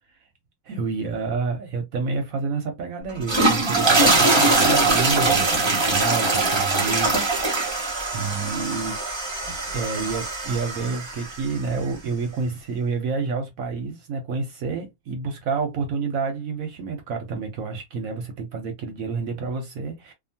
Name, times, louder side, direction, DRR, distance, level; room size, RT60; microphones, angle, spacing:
voice 1, 0.7-7.3 7.6-9.0 9.7-20.1, right 4 dB, 65° right, 0.9 m, -29 dB
sound 1, 3.1-11.4, right 3 dB, 25° right, 0.6 m, -22 dB
2.8 x 2.3 x 2.6 m
omnidirectional pair, 1.8 m